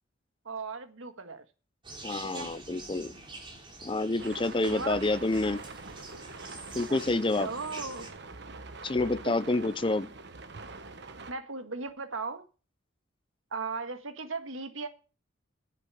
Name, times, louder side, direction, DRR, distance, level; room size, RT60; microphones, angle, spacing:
voice 1, 0.5-1.5 2.2-2.5 4.6-5.0 6.9-8.1 9.0-9.6 11.3-12.4 13.5-14.9, right 4 dB, 80° right, 1.7 m, -37 dB
sound 1, 1.8-8.1, right 2 dB, 25° right, 3.9 m, -46 dB
voice 2, 2.0-3.1 3.8-5.6 6.7-7.5 8.8-10.1, left 2 dB, 25° left, 0.6 m, -28 dB
sound 2, 4.2-11.3, right 3 dB, 55° right, 1.2 m, -44 dB
10.5 x 8.4 x 7.4 m
head